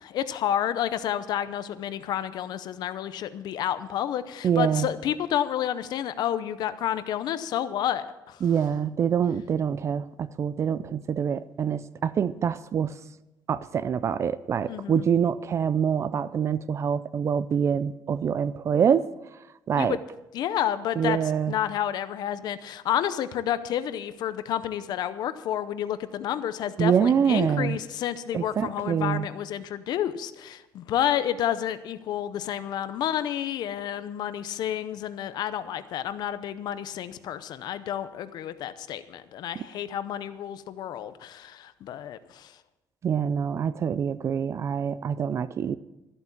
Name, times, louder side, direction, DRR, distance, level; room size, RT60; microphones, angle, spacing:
voice 1, 0.0-8.4 14.7-15.0 19.8-20.0 20.3-21.2 21.5-42.5, left 10 dB, 75° left, 13 dB, 0.7 m, -30 dB
voice 2, 4.4-4.9 8.4-12.9 13.5-19.1 19.7-20.0 21.0-21.5 26.8-27.8 28.3-29.3 39.6-39.7 43.0-45.8, right 7 dB, 40° right, 16 dB, 0.4 m, -25 dB
14.0 x 7.8 x 7.3 m, 1.0 s
cardioid pair, 150°, 7 cm